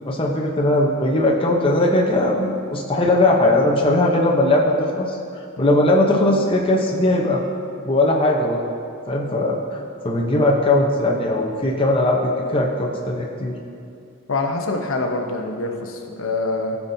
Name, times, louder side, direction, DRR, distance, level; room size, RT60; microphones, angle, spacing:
voice 1, 0.1-5.1 5.6-7.4 7.9-8.6 9.1-13.5, left 1 dB, 25° left, -1 dB, 0.8 m, -19 dB
voice 2, 14.3-16.8, left 2 dB, 75° left, 3 dB, 0.8 m, -25 dB
15.0 x 5.9 x 2.7 m, 2.6 s
head